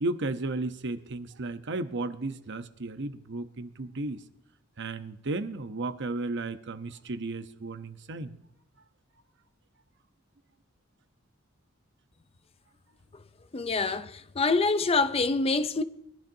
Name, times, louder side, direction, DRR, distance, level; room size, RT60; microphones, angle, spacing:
voice 1, 0.0-4.2 4.8-8.4, right 2 dB, 60° right, 0.9 m, -34 dB
voice 2, 13.5-15.8, left 3 dB, 30° left, 0.5 m, -26 dB
21.5 x 12.0 x 2.7 m
head